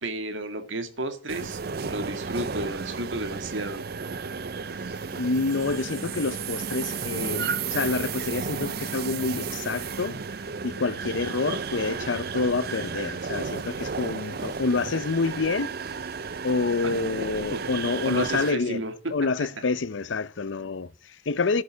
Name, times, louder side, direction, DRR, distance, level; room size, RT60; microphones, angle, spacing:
voice 1, 0.0-3.8 17.5-17.6 18.1-18.9, right 2 dB, 80° right, 1.9 m, -32 dB
sound 1, 1.3-18.5, right 5 dB, 55° right, 0.6 m, -33 dB
voice 2, 5.1-10.2 10.6-15.7 16.4-18.8 19.1-21.6, left 4 dB, 75° left, 0.6 m, -27 dB
11.0 x 6.8 x 8.1 m
head